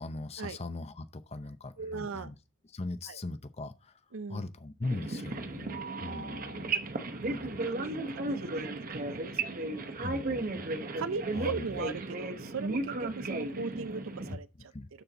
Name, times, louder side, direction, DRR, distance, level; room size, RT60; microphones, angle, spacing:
voice 1, 0.0-2.3 2.7-3.9 4.3-6.7 7.2-7.6 10.0-10.5 11.4-11.8 14.3-14.4 14.7-14.9, left 2 dB, 30° left, 0.6 m, -39 dB
voice 2, 1.8-2.3 3.1-3.2 4.1-4.5 6.1-6.4 7.2-7.4 7.6-10.1 11.0-14.7, right 4 dB, 75° right, 0.6 m, -39 dB
sound 1, 4.8-14.4, right 2 dB, 40° right, 0.8 m, -35 dB
12.5 x 4.4 x 3.9 m
head